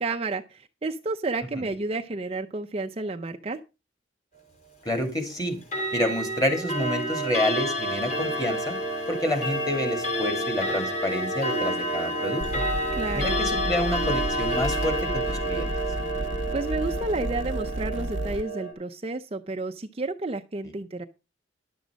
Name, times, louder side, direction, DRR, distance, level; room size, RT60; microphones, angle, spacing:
voice 1, 0.0-3.6 12.9-13.4 16.5-21.0, right 3 dB, 30° right, 6 dB, 0.5 m, -31 dB
voice 2, 4.8-5.6 5.9-8.8 9.1-12.6 13.1-15.7, left 1 dB, 20° left, 5 dB, 2.7 m, -28 dB
Clock, 5.6-18.7, equal, 35° left, 4.0 m, -29 dB
sound 1, 12.4-18.4, right 1 dB, 80° right, 0.7 m, -32 dB
11.0 x 7.4 x 5.1 m, 0.30 s
head